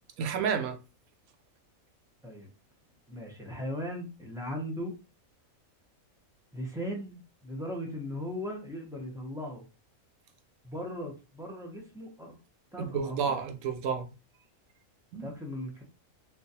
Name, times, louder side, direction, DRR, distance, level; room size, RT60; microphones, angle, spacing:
voice 1, 0.2-0.8 12.8-14.1 15.1-15.3, right 6 dB, 85° right, 1.1 m, -30 dB
voice 2, 3.1-4.9 6.5-9.6 10.6-12.4 12.7-13.4 15.2-15.8, equal, 5° right, 0.4 m, -38 dB
3.7 x 2.5 x 2.7 m
omnidirectional pair, 1.5 m